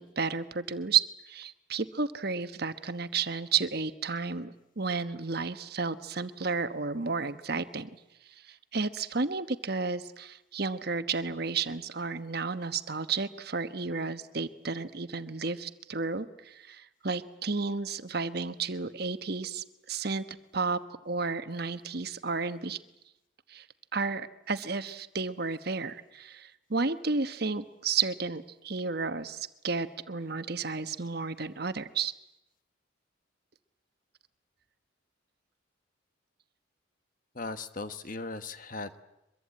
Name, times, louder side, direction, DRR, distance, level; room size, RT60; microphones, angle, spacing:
voice 1, 0.0-7.9 8.5-22.8 23.5-23.6 23.9-32.1, right 4 dB, 50° right, 11 dB, 1.2 m, -32 dB
voice 2, 37.3-39.0, left 3 dB, 40° left, 11 dB, 1.3 m, -38 dB
24.0 x 23.0 x 8.8 m, 0.91 s
head